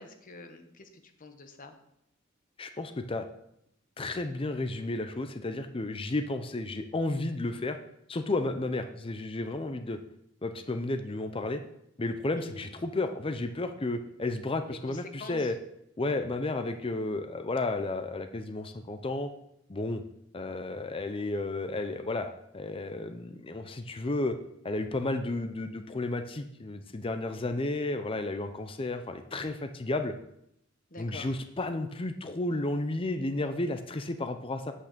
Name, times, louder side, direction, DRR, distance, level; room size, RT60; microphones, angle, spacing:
voice 1, 0.0-1.7 12.4-12.7 14.7-15.5 30.9-31.3, left 2 dB, 40° left, 6 dB, 1.2 m, -46 dB
voice 2, 2.6-3.2 4.0-7.8 8.1-10.0 10.4-11.6 12.0-15.5 16.0-19.3 19.7-20.0 20.3-22.3 22.5-24.3 24.6-30.1 31.0-34.7, left 2 dB, 25° left, 8 dB, 0.6 m, -32 dB
8.3 x 6.0 x 6.7 m, 0.77 s
head